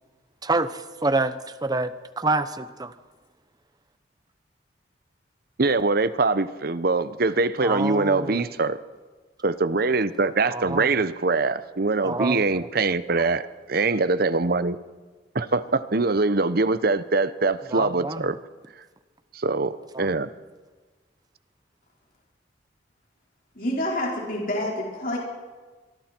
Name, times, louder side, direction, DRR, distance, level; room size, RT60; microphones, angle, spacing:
voice 1, 0.4-1.3 1.6-2.9 7.6-8.5 10.5-11.0 12.0-12.7 17.7-18.3 19.9-20.1, right 2 dB, 20° right, 12 dB, 1.0 m, -27 dB
voice 2, 5.6-8.8 9.4-14.8 15.3-18.4 19.3-20.3, right 3 dB, 55° right, 14 dB, 0.9 m, -23 dB
voice 3, 23.5-25.2, left 1 dB, 50° left, -3 dB, 4.8 m, -27 dB
25.5 x 23.5 x 4.5 m, 1.3 s
head